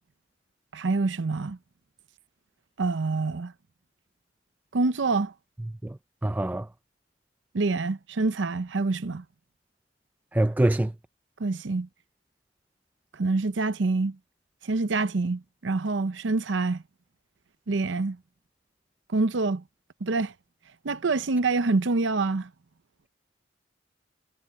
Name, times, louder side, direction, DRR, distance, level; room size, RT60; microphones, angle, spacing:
voice 1, 0.7-1.6 2.8-3.5 4.7-5.3 7.5-9.2 11.4-11.9 13.1-14.2 14.6-16.8 17.7-18.2 19.1-19.6 20.0-20.3 20.8-22.5, right 3 dB, 85° right, 0.7 m, -26 dB
voice 2, 6.2-6.6 10.3-10.9, right 1 dB, 10° right, 0.3 m, -23 dB
head